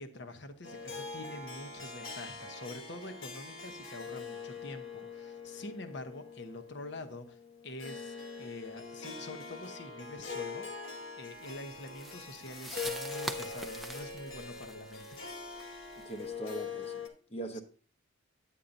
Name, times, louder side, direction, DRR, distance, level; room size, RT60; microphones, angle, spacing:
voice 1, 0.0-10.7 11.2-15.3 17.5-17.6, left 2 dB, 55° left, 0.9 m, -46 dB
Harp, 0.6-17.1, left 4 dB, 75° left, 1.3 m, -43 dB
sound 1, 11.4-16.3, right 1 dB, ahead, 0.5 m, -44 dB
voice 2, 15.9-17.6, right 2 dB, 30° left, 0.8 m, -42 dB
9.9 x 8.4 x 2.6 m
head